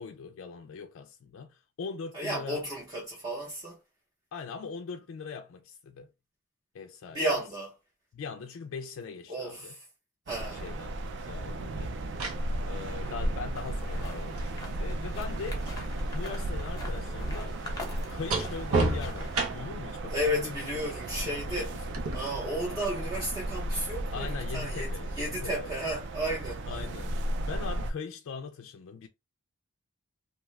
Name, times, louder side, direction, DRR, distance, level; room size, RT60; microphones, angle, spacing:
voice 1, 0.0-2.6 4.3-6.1 6.7-7.2 8.1-9.7 10.5-12.0 12.6-15.7 16.1-17.6 18.1-21.0 21.5-22.0 24.1-25.7 26.7-27.2 27.5-29.1, left 5 dB, 65° left, 0.3 m, -41 dB
voice 2, 2.1-3.8 7.1-7.7 9.3-9.8 10.3-10.7 13.0-13.1 20.1-21.7 22.1-26.8, equal, 20° right, 0.7 m, -33 dB
sound 1, 10.3-27.9, right 1 dB, 55° right, 0.3 m, -35 dB
sound 2, 12.0-15.9 16.1-19.9 21.9-22.2, right 3 dB, 85° right, 0.8 m, -34 dB
sound 3, 13.5-19.5, left 2 dB, 15° left, 0.8 m, -46 dB
2.7 x 2.3 x 3.1 m
head